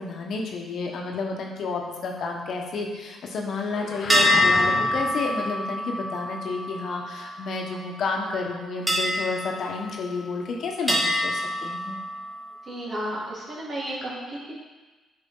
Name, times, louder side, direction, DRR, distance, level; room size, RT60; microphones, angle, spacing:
voice 1, 0.0-12.0, left 4 dB, 65° left, 1 dB, 1.1 m, -31 dB
sound 1, 3.7-5.3, left 4 dB, 45° left, 0.6 m, -34 dB
sound 2, 4.1-7.8 8.9-10.4 10.9-12.6, left 1 dB, 15° right, 1.4 m, -26 dB
voice 2, 12.7-14.5, right 1 dB, 45° right, -5 dB, 2.3 m, -33 dB
8.2 x 4.9 x 3.9 m, 1.2 s
cardioid pair, 90°, 0 cm